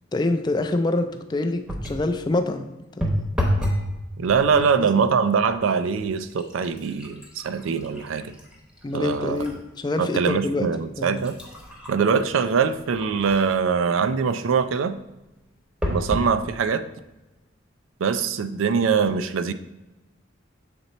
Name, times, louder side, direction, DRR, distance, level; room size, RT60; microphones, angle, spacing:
voice 1, 0.1-2.7 3.0-3.1 4.5-4.9 8.8-10.7 11.0-11.2, left 2 dB, 20° left, 7 dB, 0.3 m, -26 dB
sound 1, 1.7-2.1 3.0-3.9 4.3-4.8 5.5-5.6 6.0-9.6 10.1-10.2 10.9-13.6 15.8-16.3 17.0-17.1 17.4-17.5, equal, 5° right, 0.8 m, -30 dB
voice 2, 4.2-8.3 8.9-9.4 10.0-11.4 11.9-15.0 15.9-16.9 18.0-19.5, right 6 dB, 85° right, 12 dB, 0.4 m, -23 dB
6.7 x 4.0 x 4.1 m, 1.0 s
head